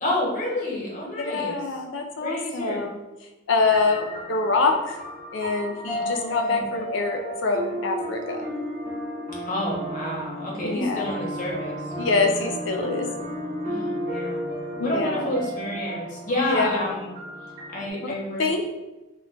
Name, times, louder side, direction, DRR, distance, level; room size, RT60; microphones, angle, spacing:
voice 1, 0.0-1.6 2.2-2.8 5.9-6.6 9.5-11.9 13.6-17.1 17.7-18.4, left 1 dB, 40° left, -3 dB, 0.7 m, -29 dB
voice 2, 1.1-3.0 3.5-5.0 5.3-8.5 10.6-11.1 12.0-13.1 14.8-15.3 16.4-17.0 18.0-18.7, left 3 dB, 60° left, 4 dB, 0.4 m, -25 dB
sound 1, 3.6-17.9, equal, 35° right, 0.7 m, -33 dB
2.2 x 2.2 x 3.8 m, 1.0 s
head